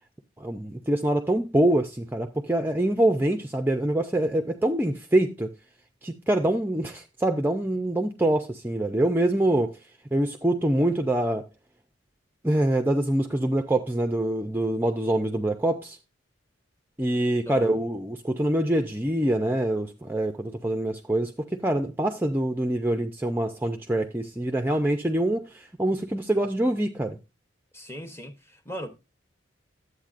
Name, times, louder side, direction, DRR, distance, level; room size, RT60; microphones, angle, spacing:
voice 1, 0.4-5.5 6.0-9.8 10.1-11.4 12.4-16.0 17.0-27.2, right 1 dB, 10° right, 0.4 m, -25 dB
voice 2, 27.7-28.9, equal, 15° left, 0.9 m, -38 dB
11.5 x 8.2 x 2.5 m
head